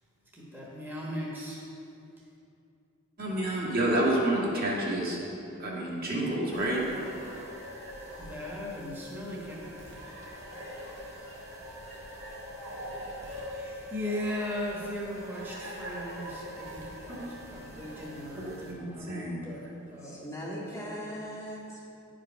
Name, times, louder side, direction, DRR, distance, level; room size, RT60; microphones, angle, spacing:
voice 1, 0.3-1.6 8.2-9.8 13.4-18.6 18.9-21.0, left 1 dB, 10° right, -4 dB, 1.2 m, -38 dB
voice 2, 3.2-5.2 5.6-6.8 17.1-17.8 18.4-19.4, right 1 dB, 45° right, -4 dB, 1.7 m, -29 dB
sound 1, 6.5-18.7, equal, 60° right, 1.9 m, -43 dB
voice 3, 20.0-21.8, equal, 15° left, -5 dB, 0.9 m, -39 dB
9.8 x 5.0 x 5.7 m, 2.7 s
head